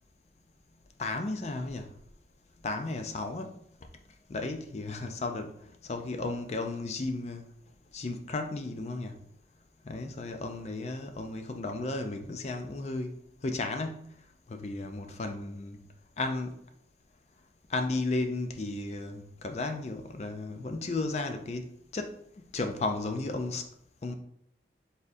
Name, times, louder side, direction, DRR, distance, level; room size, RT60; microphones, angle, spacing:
voice 1, 1.0-1.9 2.6-3.5 4.3-5.5 5.8-7.5 7.9-9.2 9.9-13.2 13.4-14.1 14.5-15.8 16.2-16.5 17.7-22.1 22.5-23.6 24.0-24.1, left 2 dB, 35° left, 0.4 m, -34 dB
4.2 x 3.6 x 2.6 m
head